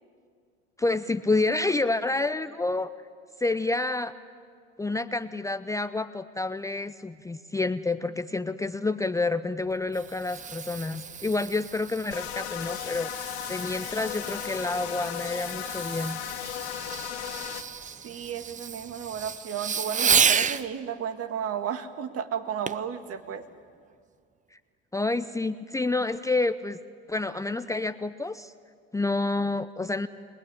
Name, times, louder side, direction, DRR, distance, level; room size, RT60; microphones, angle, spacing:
voice 1, 0.8-2.9 3.4-4.1 4.8-16.2 24.9-26.8 27.1-28.5 28.9-30.1, left 3 dB, 10° left, 11 dB, 0.7 m, -28 dB
Fireworks, 9.7-20.7 22.7-22.9 23.5-23.6, right 7 dB, 25° right, 0.8 m, -31 dB
sound 1, 12.1-17.6, left 11 dB, 80° left, 1.7 m, -36 dB
voice 2, 17.8-23.4, right 8 dB, 45° right, 9 dB, 1.9 m, -33 dB
29.5 x 19.5 x 9.9 m, 2.2 s
hypercardioid pair, 80°, 32 cm